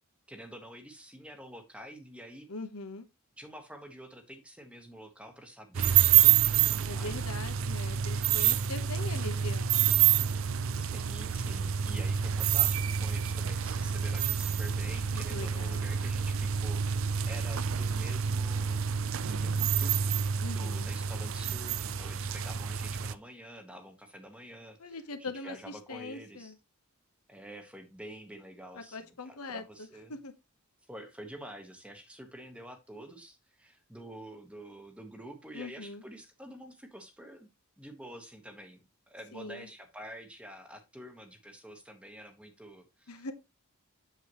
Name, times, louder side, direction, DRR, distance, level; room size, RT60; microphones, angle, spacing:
voice 1, 0.3-2.5 3.4-7.4 10.9-20.1 20.5-26.5 27.3-30.1 30.9-37.5 37.8-38.8 39.1-43.3, right 1 dB, 5° right, 1.2 m, -48 dB
voice 2, 2.5-3.0 6.8-9.8 15.1-15.9 20.4-20.9 24.8-26.5 28.7-30.3 35.5-36.0 39.3-39.7 43.1-43.3, left 3 dB, 85° left, 1.1 m, -42 dB
sound 1, 5.7-23.1, right 9 dB, 60° right, 0.5 m, -28 dB
7.8 x 6.8 x 3.0 m
head